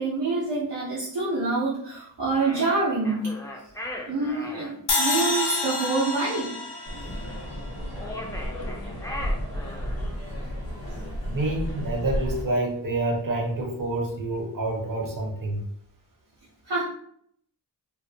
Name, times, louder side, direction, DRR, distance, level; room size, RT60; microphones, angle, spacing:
voice 1, 0.0-3.3 4.1-6.5 16.7-16.8, right 3 dB, 90° right, -9 dB, 0.7 m, -26 dB
sound 1, 2.3-4.7 7.9-10.1, left 1 dB, 10° left, 0.4 m, -38 dB
sound 2, 4.9-8.1, left 3 dB, 75° left, 0.6 m, -28 dB
sound 3, 6.9-12.4, equal, 60° left, 1.0 m, -32 dB
voice 2, 11.2-15.6, right 2 dB, 50° right, 1 dB, 0.7 m, -28 dB
2.4 x 2.1 x 2.6 m, 0.68 s
wide cardioid pair, 55°, 41 cm